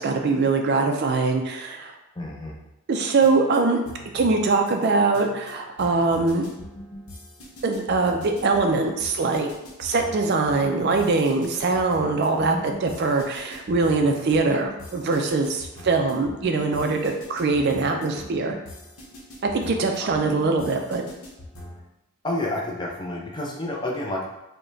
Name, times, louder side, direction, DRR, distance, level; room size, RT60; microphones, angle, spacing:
voice 1, 0.0-1.9 2.9-3.8 4.1-6.5 7.6-9.5 9.8-18.5 19.4-21.0, right 3 dB, 50° right, 4 dB, 0.3 m, -22 dB
voice 2, 2.2-2.5 12.5-12.8 20.0-20.1 22.2-24.3, left 1 dB, 20° left, -1 dB, 0.4 m, -30 dB
sound 1, 2.9-21.8, equal, 75° left, 0.9 m, -42 dB
4.7 x 2.1 x 2.6 m, 0.90 s
head